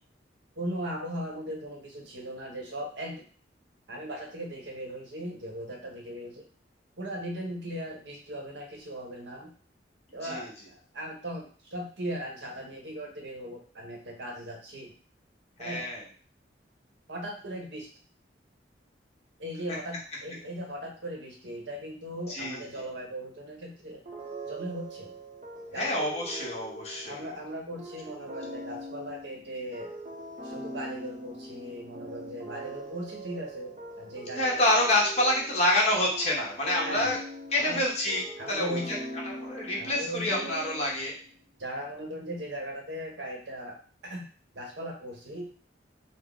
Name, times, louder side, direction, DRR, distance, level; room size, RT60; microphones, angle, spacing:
voice 1, 0.6-3.2 3.9-6.4 7.0-9.5 10.1-14.9 15.6-15.9 17.1-17.9 19.4-24.0 24.4-25.1 25.7-26.2 27.1-29.9 30.4-34.6 36.8-37.1 37.5-37.8 38.4-39.0 39.8-40.5 41.6-44.3 44.5-45.5, right 1 dB, 70° right, 1 dB, 0.9 m, -38 dB
voice 2, 15.6-16.0 22.3-22.6 25.7-27.2 34.3-37.2 37.5-39.0 39.2-41.1, left 1 dB, 35° left, -3 dB, 1.1 m, -27 dB
sound 1, 24.0-41.2, right 1 dB, 40° right, 0.6 m, -42 dB
3.8 x 2.0 x 3.7 m, 0.42 s
head